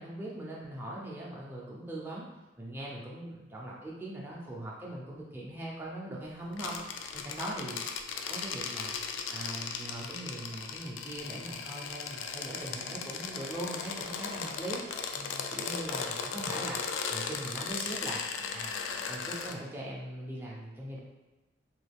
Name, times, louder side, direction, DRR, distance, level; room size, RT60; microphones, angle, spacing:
voice 1, 0.0-2.3 2.6-6.8 7.1-7.8 8.1-9.0 9.3-14.8 15.1-16.8 17.1-18.2 18.5-18.7 19.0-21.0, right 1 dB, 10° right, -4 dB, 0.5 m, -40 dB
sound 1, 6.5-19.5, left 6 dB, 80° left, 0.3 m, -37 dB
3.0 x 2.3 x 3.4 m, 1.1 s
head